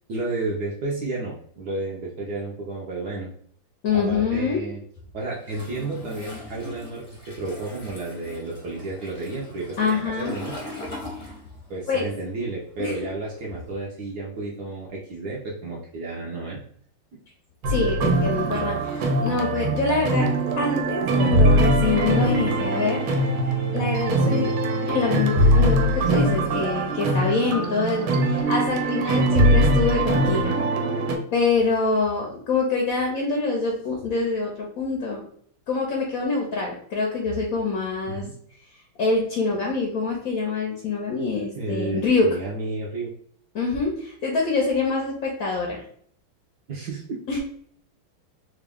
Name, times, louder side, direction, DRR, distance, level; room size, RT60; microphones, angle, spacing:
voice 1, 0.1-3.3 3.9-4.8 5.1-7.0 7.4-10.5 11.7-16.6 38.1-38.3 41.5-43.1 46.7-47.2, right 2 dB, 70° right, -3 dB, 1.0 m, -31 dB
voice 2, 3.8-4.6 9.8-10.3 11.2-11.3 11.9-12.1 12.8-13.1 17.7-20.3 20.6-23.0 23.7-24.6 24.9-30.5 31.3-35.2 35.7-38.2 39.0-42.3 43.5-45.8 47.3-47.4, left 4 dB, 70° left, 0 dB, 0.8 m, -25 dB
Toilet flush, 5.4-11.9 12.1-13.7, left 2 dB, 40° left, 0.5 m, -41 dB
sound 1, 17.6-31.2, right 1 dB, 90° right, 1.5 m, -22 dB
3.5 x 2.4 x 3.4 m, 0.62 s
omnidirectional pair, 2.3 m